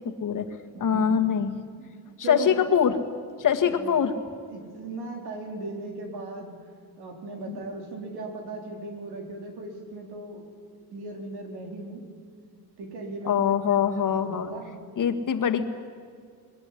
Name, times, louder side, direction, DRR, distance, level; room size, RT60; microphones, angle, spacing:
voice 1, 0.8-1.6 2.3-3.0 3.4-4.1 7.5-7.6 13.3-14.5 15.0-15.7, left 8 dB, 55° left, 7 dB, 1.9 m, -23 dB
voice 2, 4.5-6.5 7.0-10.4 10.9-12.0 12.8-14.7, right 2 dB, 80° right, 2 dB, 4.3 m, -37 dB
21.0 x 21.0 x 9.9 m, 2.1 s
cardioid pair, 125°, 38 cm